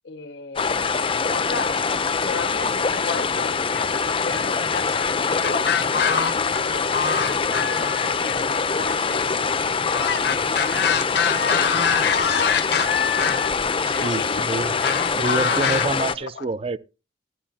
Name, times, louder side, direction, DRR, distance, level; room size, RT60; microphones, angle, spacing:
voice 1, 0.0-0.8 1.2-1.8 2.2-5.7 6.7-7.3 7.6-9.4 9.9-10.1 11.4-11.5 12.8-13.0 13.9-14.4, left 4 dB, 90° left, 1.1 m, -35 dB
sound 1, 0.6-16.2, left 5 dB, 30° left, 0.6 m, -24 dB
sound 2, 5.4-6.6 6.9-8.1 9.9-13.5 14.8-15.9, left 7 dB, 65° left, 0.8 m, -24 dB
voice 2, 13.8-14.8 15.1-16.8, right 2 dB, 35° right, 0.5 m, -27 dB
13.5 x 11.0 x 2.8 m
head